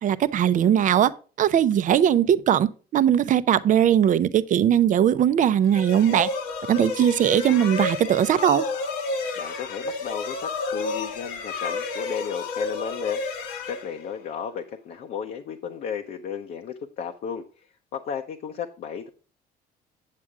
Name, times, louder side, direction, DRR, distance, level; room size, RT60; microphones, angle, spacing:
voice 1, 0.0-1.1 1.4-6.3 6.7-8.6, right 10 dB, 50° right, 0.6 m, -20 dB
sound 1, 5.7-14.4, left 3 dB, 90° left, 1.6 m, -31 dB
voice 2, 9.4-19.1, left 7 dB, 60° left, 0.9 m, -34 dB
8.4 x 7.4 x 3.6 m
cardioid pair, 110°, 17 cm